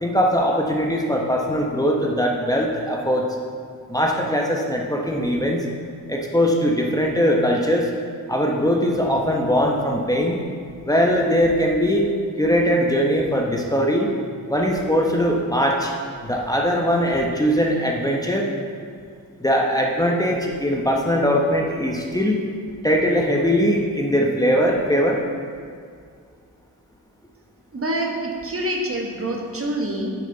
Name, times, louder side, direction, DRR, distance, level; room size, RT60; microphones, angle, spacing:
voice 1, 0.0-3.2 3.9-5.6 6.1-7.9 8.3-10.4 10.8-12.1 12.4-14.1 14.5-15.9 16.2-18.5 19.4-22.4 22.8-25.2, equal, 10° left, -1 dB, 1.0 m, -20 dB
voice 2, 27.7-30.1, right 1 dB, 40° right, 0 dB, 1.4 m, -26 dB
9.0 x 7.7 x 4.0 m, 2.2 s
cardioid pair, 75°, 34 cm